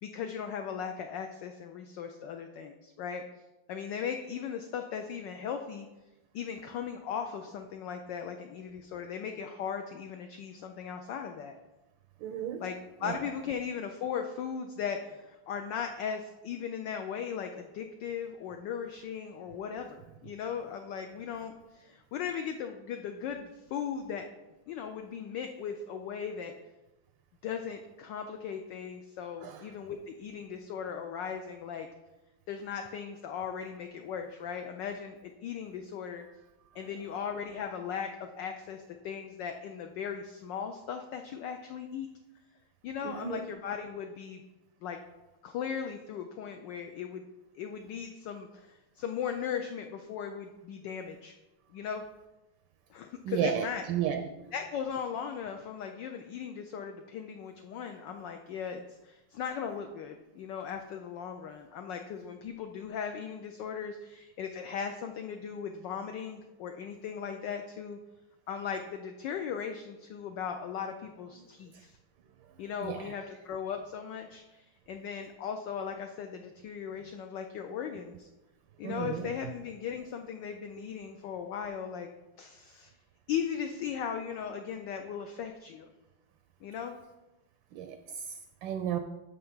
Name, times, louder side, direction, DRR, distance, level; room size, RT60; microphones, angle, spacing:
voice 1, 0.0-3.2 3.7-5.9 6.3-11.6 12.6-24.3 24.7-26.5 27.4-31.9 32.5-36.2 36.7-42.1 42.8-44.4 44.8-45.0 45.4-47.2 47.5-51.3 51.7-52.0 52.9-53.8 54.5-68.0 68.5-72.0 72.6-78.3 78.8-82.1 82.4-82.9 83.3-85.9 86.6-87.0, left 7 dB, 75° left, 5 dB, 1.1 m, -38 dB
voice 2, 12.2-12.6 13.0-13.2 29.4-29.6 43.0-43.5 53.2-54.4 72.8-73.2 78.8-79.3 87.7-89.0, right 9 dB, 75° right, 8 dB, 1.1 m, -34 dB
6.4 x 5.7 x 5.5 m, 1.1 s
omnidirectional pair, 2.3 m